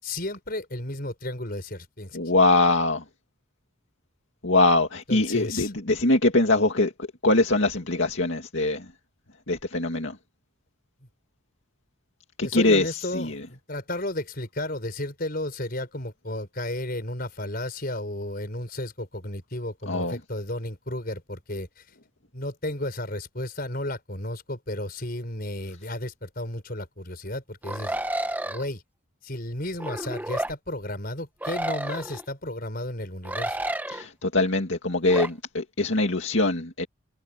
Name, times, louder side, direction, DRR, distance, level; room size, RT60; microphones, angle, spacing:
voice 1, 0.0-2.2 5.1-5.7 12.4-21.8 22.3-28.0 28.5-28.8 29.2-33.6, left 1 dB, 45° left, 5.6 m, -33 dB
voice 2, 2.1-3.0 4.4-6.9 7.2-8.9 9.5-10.2 12.4-13.4 19.9-20.2 33.9-36.9, left 2 dB, 65° left, 2.3 m, -23 dB
sound 1, 27.6-28.7 29.8-30.5 31.4-32.2 33.3-34.0 35.1-35.3, right 1 dB, 10° right, 1.1 m, -30 dB
head